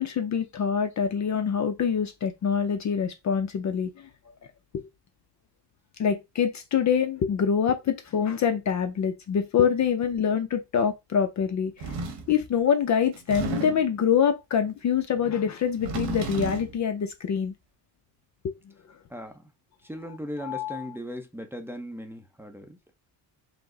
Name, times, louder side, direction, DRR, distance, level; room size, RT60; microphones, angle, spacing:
voice 1, 0.0-4.1 4.7-4.8 6.0-12.0 12.3-17.5 18.4-18.5 20.4-20.9, left 7 dB, 40° left, 0.5 m, -25 dB
sound 1, 11.8-12.3 13.1-14.0 15.6-16.8, right 3 dB, 85° right, 1.2 m, -32 dB
voice 2, 19.1-19.5 19.8-22.8, equal, 5° right, 0.6 m, -38 dB
4.8 x 2.1 x 3.7 m
cardioid pair, 120°, 44 cm